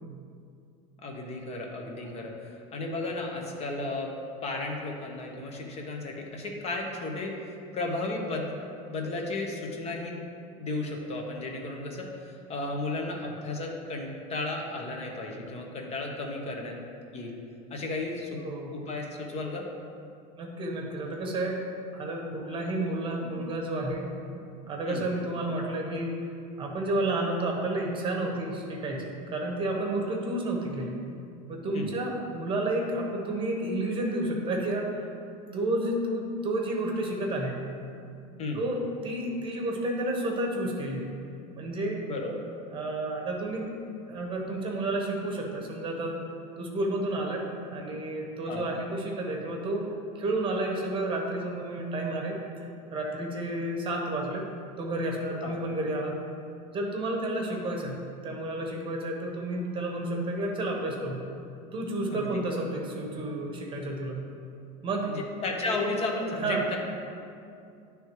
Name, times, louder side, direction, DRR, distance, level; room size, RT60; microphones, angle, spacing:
voice 1, 1.0-4.1 4.4-7.3 7.7-8.6 8.9-10.3 10.6-16.8 17.1-17.4 17.7-18.4 18.7-19.6 24.9-25.0 31.7-31.9 38.4-38.6 42.1-42.3 48.4-48.6 55.4-55.5 62.1-62.4 65.0-66.8, left 2 dB, 35° left, 1 dB, 1.0 m, -34 dB
voice 2, 18.4-18.8 20.4-21.6 21.9-24.1 24.3-26.1 26.6-31.0 31.5-34.9 35.5-37.6 38.5-41.1 41.6-42.1 42.7-43.7 44.1-46.2 46.6-49.9 50.1-52.4 52.9-54.5 54.8-56.2 56.7-61.2 61.7-64.2 64.8-65.1 66.4-66.7, right 1 dB, 25° right, 0 dB, 1.1 m, -31 dB
10.5 x 3.5 x 3.1 m, 2.4 s
supercardioid pair, 120°, 19 cm